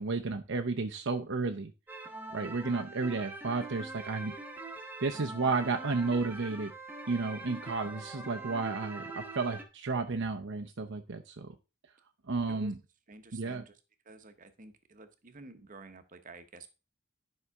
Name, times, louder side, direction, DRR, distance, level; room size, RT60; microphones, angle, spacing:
voice 1, 0.0-1.7 2.3-4.3 5.0-6.7 7.1-11.5 12.3-12.8 13.3-13.6, right 3 dB, 60° right, 4 dB, 0.7 m, -32 dB
sound 1, 1.9-9.6, right 2 dB, 10° right, 1.3 m, -43 dB
voice 2, 13.1-13.8 14.0-16.7, right 3 dB, 40° right, 9 dB, 1.0 m, -51 dB
11.0 x 5.6 x 3.6 m, 0.30 s
head